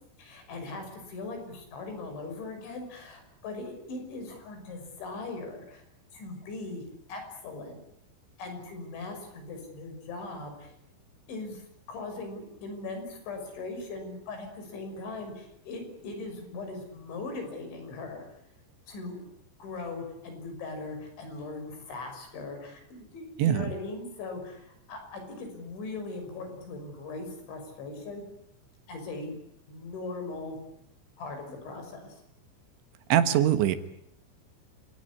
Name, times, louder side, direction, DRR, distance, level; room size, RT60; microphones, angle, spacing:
voice 1, 0.2-5.8 6.1-6.8 7.1-7.8 8.4-10.7 11.3-18.2 18.9-19.2 19.6-28.2 28.9-29.3 29.7-30.6 31.2-32.2, left 3 dB, 75° left, 5 dB, 8.2 m, -39 dB
voice 2, 23.4-23.7 33.1-33.8, right 11 dB, 80° right, 11 dB, 3.7 m, -22 dB
29.5 x 18.0 x 9.9 m, 0.75 s
omnidirectional pair, 5.4 m